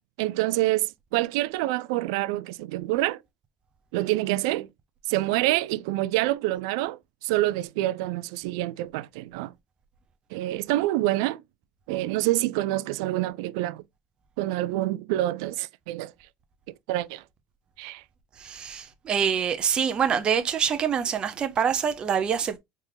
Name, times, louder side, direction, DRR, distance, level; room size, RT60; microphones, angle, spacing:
voice 1, 0.2-3.2 3.9-4.7 5.1-9.5 10.3-11.4 11.9-13.8 14.4-16.1 16.9-17.2 17.8-18.0, right 17 dB, 85° right, 0.3 m, -27 dB
voice 2, 18.4-22.6, right 7 dB, 40° right, 0.9 m, -25 dB
4.3 x 3.6 x 3.1 m
supercardioid pair, 95°, 2 cm